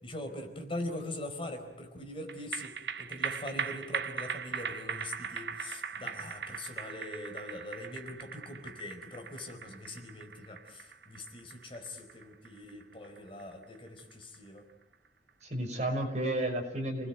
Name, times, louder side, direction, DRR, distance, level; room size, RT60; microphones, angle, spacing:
voice 1, 0.0-14.6, left 1 dB, 30° left, 4 dB, 4.5 m, -42 dB
sound 1, 2.3-14.9 15.3-15.4, right 6 dB, 70° right, 1.0 m, -40 dB
voice 2, 15.4-17.1, right 1 dB, 40° right, 3 dB, 5.9 m, -33 dB
30.0 x 20.0 x 9.2 m, 0.88 s
head